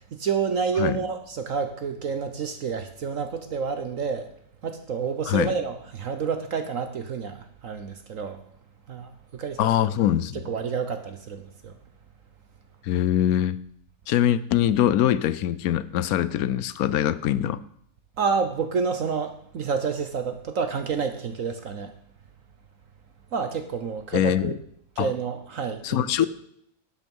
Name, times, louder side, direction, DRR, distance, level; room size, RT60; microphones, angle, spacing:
voice 1, 0.0-4.3 4.6-8.4 8.9-9.9 10.4-11.8 18.2-21.9 23.3-24.5 25.0-26.3, right 5 dB, 55° right, 7 dB, 1.2 m, -29 dB
voice 2, 9.6-10.4 12.8-13.6 14.1-17.6 24.1-24.6 25.0-25.1 25.8-26.3, left 11 dB, 70° left, 17 dB, 1.0 m, -23 dB
11.5 x 8.6 x 5.4 m, 0.69 s
omnidirectional pair, 1.8 m